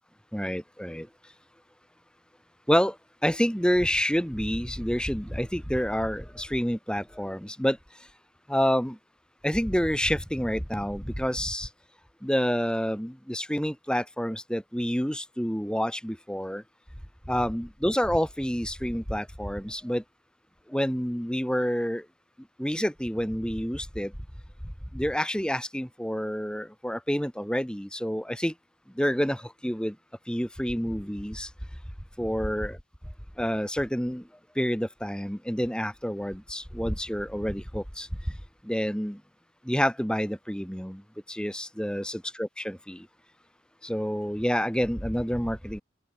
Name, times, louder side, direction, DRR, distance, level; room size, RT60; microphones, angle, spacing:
voice 1, 0.3-1.1 2.7-3.0 3.2-7.8 8.5-9.0 9.4-11.7 12.2-16.6 17.3-20.0 20.7-22.0 22.6-24.1 24.9-28.5 29.0-30.0 30.3-31.5 32.2-32.8 33.4-34.2 34.6-38.1 38.6-39.2 39.7-41.0 41.3-43.1 43.8-45.8, equal, 5° left, 3.7 m, -28 dB
head